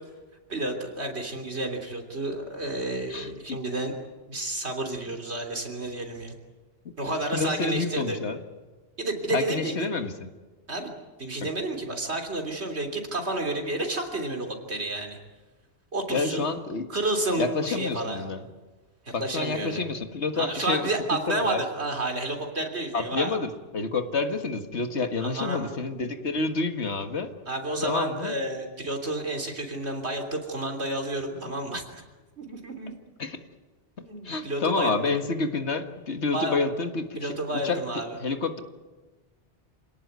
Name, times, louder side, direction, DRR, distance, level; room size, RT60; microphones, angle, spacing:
voice 1, 0.5-3.9 4.3-6.4 7.0-8.2 9.0-9.7 10.7-10.9 11.2-15.2 15.9-16.5 16.9-18.3 19.1-19.8 20.4-23.3 25.2-25.7 27.5-32.0 32.4-32.9 34.0-34.9 36.3-36.6 37.2-38.2, right 2 dB, 65° right, 4 dB, 3.6 m, -30 dB
voice 2, 3.1-3.6 7.3-8.4 9.3-10.3 11.4-11.5 16.1-16.9 17.4-18.4 19.1-21.6 22.9-27.3 27.8-28.3 33.2-33.4 34.2-37.3 37.6-37.8 38.1-38.6, left 4 dB, 70° left, 7 dB, 1.9 m, -29 dB
27.5 x 18.0 x 9.5 m, 1.3 s
omnidirectional pair, 1.2 m